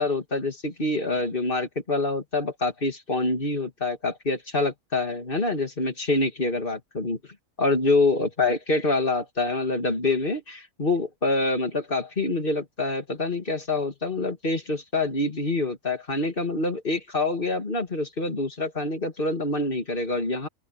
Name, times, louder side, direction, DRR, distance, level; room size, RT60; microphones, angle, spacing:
voice 1, 0.0-7.2 7.6-20.5, left 2 dB, 40° left, 2.6 m, -26 dB
open air
omnidirectional pair, 1.4 m